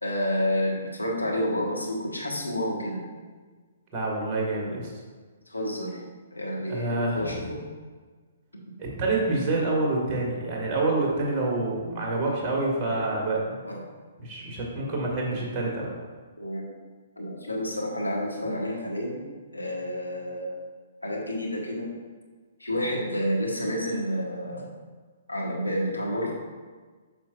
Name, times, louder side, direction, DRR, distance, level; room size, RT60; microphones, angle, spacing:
voice 1, 0.0-3.1 5.5-6.0 6.3-7.6 13.7-13.8 16.4-16.6 17.2-20.5 21.0-21.9 22.6-24.7 25.3-26.3, equal, 85° left, -2 dB, 1.4 m, -29 dB
voice 2, 3.9-4.9 6.7-7.4 8.8-13.6 14.2-15.9, right 2 dB, 25° right, -3 dB, 1.8 m, -27 dB
8.2 x 6.1 x 2.5 m, 1.4 s
figure-of-eight pair, 120°, 0 cm